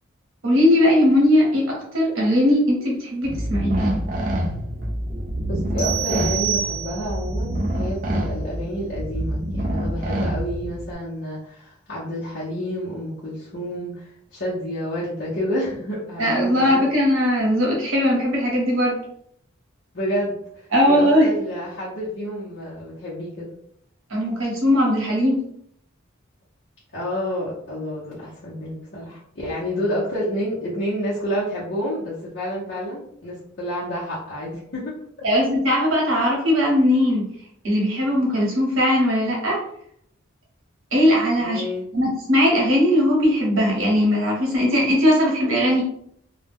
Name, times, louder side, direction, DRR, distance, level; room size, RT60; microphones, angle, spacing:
voice 1, 0.4-3.9 16.2-19.0 20.7-21.3 24.1-25.4 35.2-37.3 37.6-39.6 40.9-41.6 41.9-45.8, left 1 dB, 70° right, -3 dB, 0.9 m, -19 dB
sound 1, 3.2-10.9, right 1 dB, 40° right, 0.4 m, -26 dB
voice 2, 5.5-16.9 19.9-23.5 26.9-34.9 41.4-41.9, equal, 55° left, -9 dB, 0.7 m, -29 dB
sound 2, 5.8-7.3, right 10 dB, 25° left, 1.1 m, -27 dB
2.2 x 2.1 x 3.4 m, 0.71 s
head